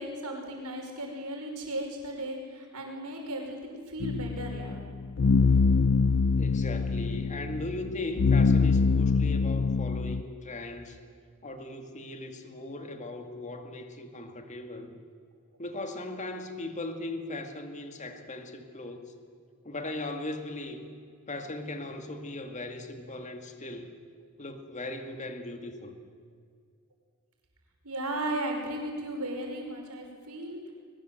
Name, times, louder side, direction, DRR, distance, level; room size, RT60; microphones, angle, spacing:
voice 1, 0.0-4.8 14.6-14.7 27.8-30.6, right 1 dB, 85° right, 1 dB, 5.6 m, -36 dB
sound 1, 4.0-10.2, left 4 dB, 55° left, 0.5 m, -24 dB
voice 2, 6.4-11.0 11.4-14.9 15.6-19.0 19.6-20.8 21.3-23.9 24.4-26.0, left 2 dB, 35° left, 6 dB, 2.2 m, -38 dB
21.5 x 21.5 x 7.9 m, 2.1 s
head